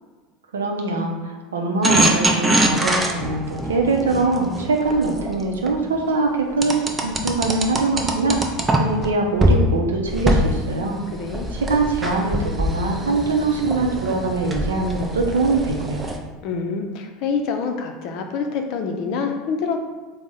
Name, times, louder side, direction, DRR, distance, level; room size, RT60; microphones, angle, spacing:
voice 1, 0.5-8.4 8.8-11.0 11.5-16.1, right 3 dB, 85° right, 2 dB, 0.5 m, -23 dB
sound 1, 1.8-5.7 6.6-9.1 9.4-9.6 10.1-16.2, right 1 dB, 20° right, 0.5 m, -23 dB
voice 2, 11.1-11.5 16.4-19.8, left 5 dB, 55° left, 5 dB, 0.5 m, -26 dB
3.5 x 2.0 x 3.9 m, 1.4 s
hypercardioid pair, 80°, 0 cm